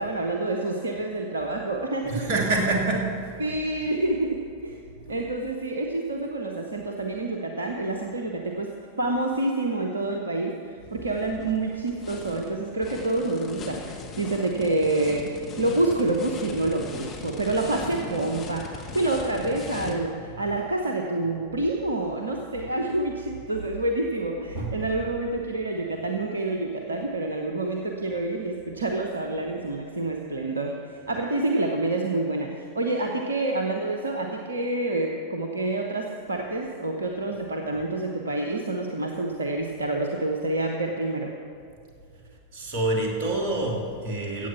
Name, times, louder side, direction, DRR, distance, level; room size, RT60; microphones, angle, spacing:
voice 1, 0.0-2.3 3.4-4.8 5.1-8.7 9.0-41.3, right 2 dB, 75° right, 2 dB, 0.9 m, -28 dB
voice 2, 2.0-3.1 17.0-17.1 24.5-24.9 42.5-44.5, right 2 dB, 45° right, 0 dB, 2.6 m, -26 dB
sound 1, 10.8-19.9, left 4 dB, 30° left, 1.7 m, -39 dB
15.0 x 8.4 x 5.8 m, 2.5 s
figure-of-eight pair, 90°, 0 cm